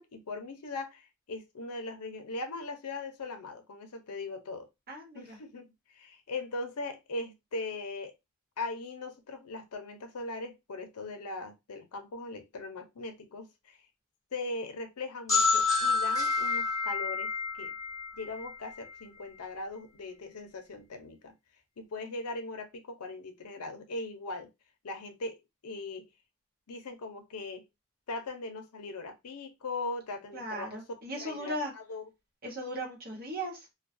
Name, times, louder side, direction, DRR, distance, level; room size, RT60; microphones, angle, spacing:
voice 1, 0.0-4.7 5.1-8.1 8.6-13.8 14.3-17.7 18.1-21.3 21.8-24.5 24.8-25.4 25.6-26.1 26.7-27.7 28.1-30.8 31.2-32.1, left 2 dB, 90° left, 0.6 m, -40 dB
voice 2, 4.9-5.4 30.3-31.7 32.4-33.6, equal, 45° right, 1.0 m, -37 dB
sound 1, 15.3-18.9, left 4 dB, 15° left, 1.0 m, -29 dB
2.2 x 2.2 x 2.5 m
head